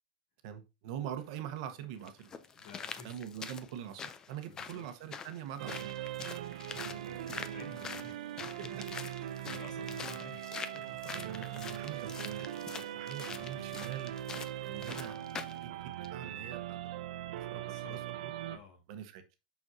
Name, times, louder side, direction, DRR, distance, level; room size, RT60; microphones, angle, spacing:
voice 1, 0.4-2.4 3.0-6.0 6.8-7.3 11.1-14.1 14.7-17.2 17.5-17.6 17.9-18.3 18.9-19.2, right 10 dB, 45° right, 1.1 m, -44 dB
sound 1, 1.2-1.3 2.1-15.6 16.0-16.1, left 6 dB, 15° left, 0.4 m, -45 dB
voice 2, 2.5-3.2 4.4-4.8 6.7-8.3 8.6-11.2 11.9-12.1 13.3-14.0 17.5-18.1 18.5-18.8, left 3 dB, 60° left, 3.1 m, -53 dB
sound 2, 5.6-18.6, right 12 dB, 65° right, 0.8 m, -41 dB
6.3 x 6.3 x 2.7 m
supercardioid pair, 175°, 5 cm